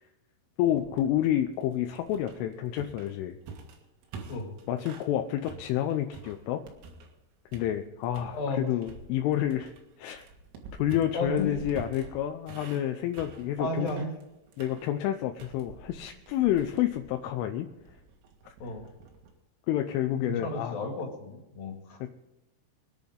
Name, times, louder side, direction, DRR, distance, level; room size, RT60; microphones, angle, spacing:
voice 1, 0.6-3.4 4.7-6.6 7.5-9.7 10.0-10.3 10.8-13.9 14.6-17.7 19.7-20.8 22.0-22.1, left 12 dB, 80° left, 5 dB, 3.2 m, -29 dB
sound 1, 0.8-5.1 5.5-7.2 7.5-8.3 8.8-19.3, right 4 dB, 85° right, 4.6 m, -47 dB
voice 2, 8.3-8.7 11.1-11.5 13.6-14.1 18.6-18.9 20.3-22.0, left 2 dB, 50° left, 1 dB, 3.7 m, -33 dB
24.5 x 10.5 x 3.8 m, 1.0 s
omnidirectional pair, 5.8 m